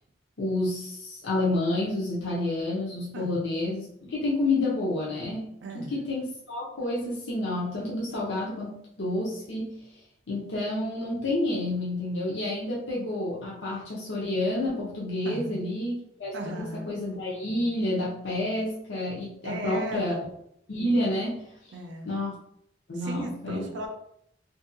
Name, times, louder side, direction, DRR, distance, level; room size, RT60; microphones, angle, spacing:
voice 1, 0.4-9.8 10.3-20.2 20.7-21.4 22.1-22.4 22.9-23.7, left 1 dB, 70° left, -5 dB, 0.6 m, -29 dB
voice 2, 5.6-6.0 15.2-15.6 16.3-17.0 19.4-20.3 21.7-22.2 22.9-23.9, right 1 dB, 70° right, 3 dB, 0.5 m, -36 dB
2.7 x 2.7 x 2.5 m, 0.72 s
head